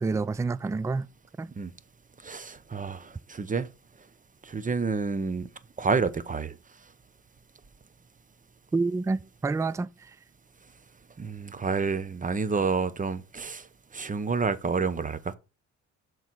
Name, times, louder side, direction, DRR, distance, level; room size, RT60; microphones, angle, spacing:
voice 1, 0.0-1.1 1.4-1.5 8.7-10.2, right 3 dB, 10° right, 0.3 m, -28 dB
voice 2, 2.2-3.7 4.4-5.5 5.8-6.6 11.2-13.7 13.9-15.3, right 4 dB, 25° right, 0.9 m, -29 dB
7.0 x 4.1 x 6.1 m
cardioid pair, 90°, 30 cm